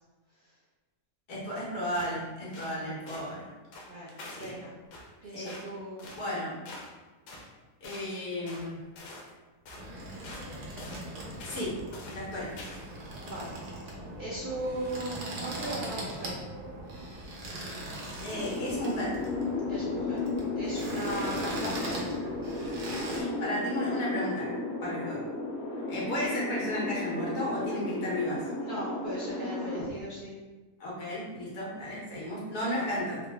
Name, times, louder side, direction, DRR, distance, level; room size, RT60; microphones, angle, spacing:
voice 1, 1.3-3.5 4.3-4.5 5.3-5.5 6.1-6.6 7.8-8.8 11.4-11.7 12.1-12.5 18.2-19.1 23.2-24.5 24.8-25.2 25.9-28.4 30.8-33.2, left 1 dB, 70° left, -6 dB, 1.6 m, -34 dB
sound 1, 1.9-2.2 2.5-2.8 3.1-3.3 3.7-4.5 4.9-5.1 5.5-5.7 6.0-6.3 6.7-7.0 7.3-7.5 7.8-8.1 8.5-8.7 9.0-9.3 9.7-9.9 10.2-10.5 10.8-11.0 11.4-11.7 11.9-12.3 12.6-12.9, left 2 dB, 90° left, 1.3 m, -46 dB
voice 2, 3.9-4.7 5.2-6.0 13.2-13.5 13.9-16.4 19.7-20.2 20.6-21.9 28.6-30.4 32.7-32.9, right 1 dB, 60° right, -8 dB, 0.5 m, -38 dB
sound 2, 9.8-23.2, right 1 dB, 85° right, 1.3 m, -40 dB
sound 3, 18.3-29.9, left 2 dB, 45° left, 1.3 m, -34 dB
3.8 x 2.0 x 3.3 m, 1.2 s
omnidirectional pair, 1.7 m